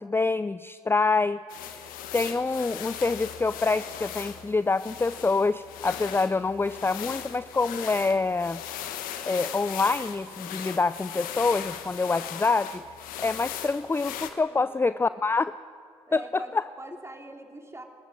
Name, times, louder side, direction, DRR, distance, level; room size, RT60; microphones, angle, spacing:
voice 1, 0.0-1.4 1.7-8.6 9.3-12.8 13.2-15.5 16.1-16.2, left 3 dB, 15° left, 15 dB, 0.5 m, -26 dB
sound 1, 1.5-14.3, left 10 dB, 75° left, 1.3 m, -38 dB
voice 2, 14.5-15.3 16.1-17.8, right 1 dB, 20° right, 3 dB, 3.4 m, -44 dB
26.0 x 13.5 x 7.5 m, 2.2 s
hypercardioid pair, 45°, 14 cm